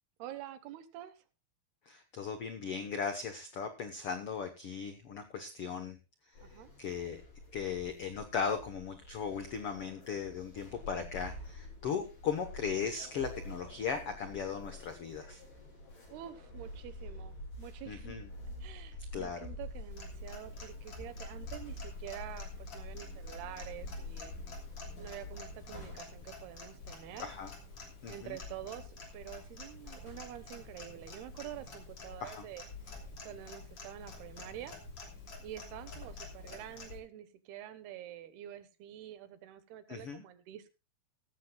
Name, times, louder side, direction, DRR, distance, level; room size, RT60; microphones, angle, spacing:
voice 1, 0.2-1.2 6.4-6.7 11.9-12.1 16.1-18.2 18.6-24.3 25.0-27.3 28.1-32.6 33.2-34.8 35.4-40.7, right 12 dB, 90° right, 11 dB, 3.2 m, -47 dB
voice 2, 1.9-6.0 6.5-7.2 7.5-15.4 17.9-18.3 19.1-19.4 27.2-27.5 28.0-28.4 32.2-32.5 39.9-40.2, left 6 dB, 80° left, 7 dB, 1.3 m, -37 dB
sound 1, 6.4-25.9, left 1 dB, 60° left, 9.1 m, -47 dB
Clock, 19.9-37.0, left 4 dB, 40° left, 3.7 m, -50 dB
sound 2, 25.5-36.6, left 2 dB, 10° right, 5.0 m, -55 dB
16.5 x 14.0 x 2.3 m, 0.28 s
omnidirectional pair, 4.4 m